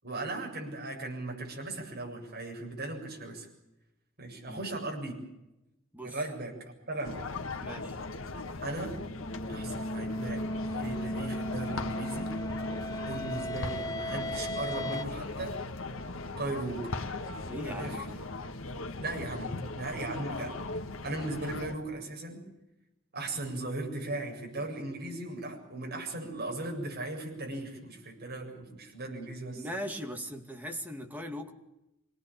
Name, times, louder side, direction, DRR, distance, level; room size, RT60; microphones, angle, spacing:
voice 1, 0.0-3.5 4.2-5.2 6.0-6.5 6.9-7.2 8.6-9.0 9.5-10.4 10.8-12.3 13.1-15.6 16.4-17.0 17.6-18.0 19.0-20.6 21.0-22.5 23.1-29.7, right 2 dB, 50° right, 1 dB, 7.6 m, -37 dB
sound 1, 7.0-21.7, left 3 dB, 75° left, 1.6 m, -38 dB
voice 2, 7.6-8.0 17.5-18.3 29.6-31.5, equal, 10° right, 4 dB, 2.3 m, -39 dB
sound 2, 8.8-15.0, equal, 20° left, 1.0 m, -36 dB
25.5 x 19.0 x 8.6 m, 0.91 s
head